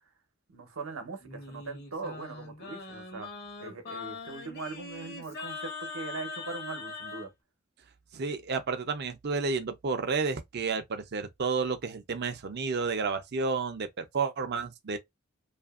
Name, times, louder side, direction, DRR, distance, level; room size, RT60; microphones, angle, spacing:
voice 1, 0.5-3.3 3.6-7.3, right 3 dB, 80° right, 0.8 m, -40 dB
Singing, 1.2-7.3, left 3 dB, 50° left, 0.9 m, -41 dB
voice 2, 8.1-15.0, right 4 dB, 55° right, 0.5 m, -31 dB
2.8 x 2.5 x 2.3 m
head